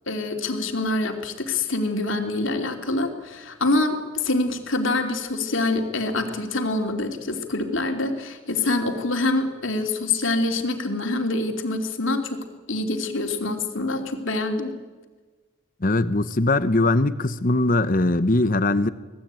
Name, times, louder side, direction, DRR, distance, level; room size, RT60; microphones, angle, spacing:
voice 1, 0.1-14.7, left 2 dB, 65° left, 4 dB, 2.9 m, -25 dB
voice 2, 15.8-18.9, left 2 dB, 40° left, 13 dB, 0.9 m, -21 dB
25.5 x 18.5 x 9.0 m, 1.4 s
head